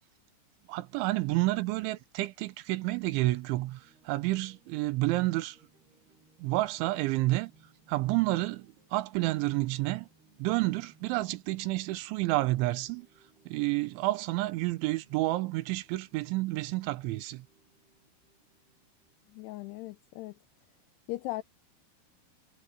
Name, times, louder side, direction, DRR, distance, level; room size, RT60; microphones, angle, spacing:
voice 1, 0.7-5.6 6.4-7.5 7.9-10.1 10.4-13.1 13.5-17.5, right 19 dB, 80° right, 3.3 m, -30 dB
sound 1, 3.5-20.4, right 4 dB, 60° right, 8.9 m, -65 dB
voice 2, 19.3-20.3 21.1-21.4, left 17 dB, 85° left, 2.3 m, -38 dB
omnidirectional pair, 5.4 m